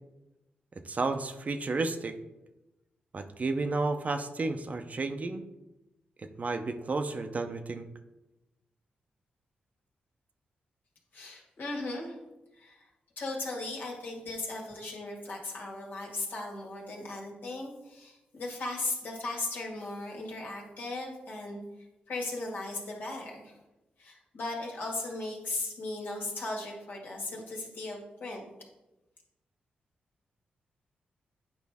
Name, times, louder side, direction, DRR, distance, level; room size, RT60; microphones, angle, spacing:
voice 1, 0.9-2.1 3.1-5.4 6.4-7.9, right 3 dB, 45° right, 7 dB, 0.6 m, -32 dB
voice 2, 11.1-12.2 12.6-12.8 13.2-21.6 22.1-23.6 24.0-28.4, left 2 dB, 70° left, -2 dB, 1.9 m, -37 dB
8.3 x 5.1 x 3.5 m, 0.99 s
cardioid pair, 70°, 3 cm